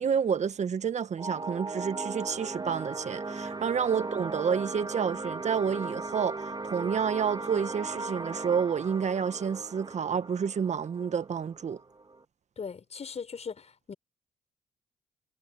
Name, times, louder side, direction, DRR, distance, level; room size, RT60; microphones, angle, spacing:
voice 1, 0.0-11.8, right 7 dB, 50° right, 1.9 m, -29 dB
sound 1, 1.2-12.2, right 3 dB, 30° right, 3.4 m, -37 dB
voice 2, 12.6-13.9, left 6 dB, 50° left, 5.4 m, -39 dB
hypercardioid pair, 45°, 15 cm